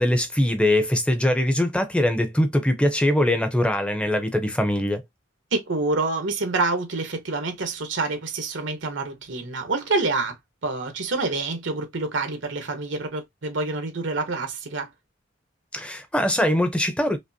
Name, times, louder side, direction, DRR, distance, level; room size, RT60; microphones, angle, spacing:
voice 1, 0.0-5.0 15.7-17.2, left 1 dB, 5° left, 0.6 m, -22 dB
voice 2, 5.5-10.4 10.6-14.9, right 3 dB, 75° right, 1.0 m, -27 dB
5.1 x 2.1 x 2.7 m
head